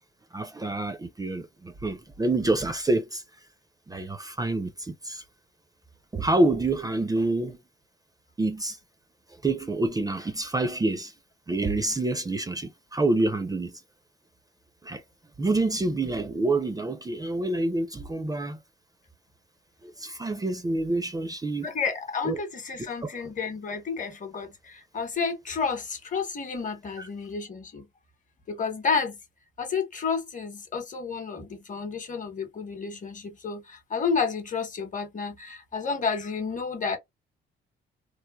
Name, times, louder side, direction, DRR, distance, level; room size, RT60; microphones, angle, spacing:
voice 1, 0.3-3.2 3.9-5.2 6.1-7.6 8.4-8.8 9.4-11.1 11.5-13.8 14.8-15.0 15.4-18.6 19.8-21.7 22.2-22.4 23.0-23.1 27.0-27.1, right 2 dB, 20° right, 0.5 m, -27 dB
voice 2, 21.6-27.9 28.5-29.2 29.6-37.0, left 5 dB, 40° left, 1.0 m, -31 dB
3.2 x 2.0 x 2.2 m
cardioid pair, 90°, 20 cm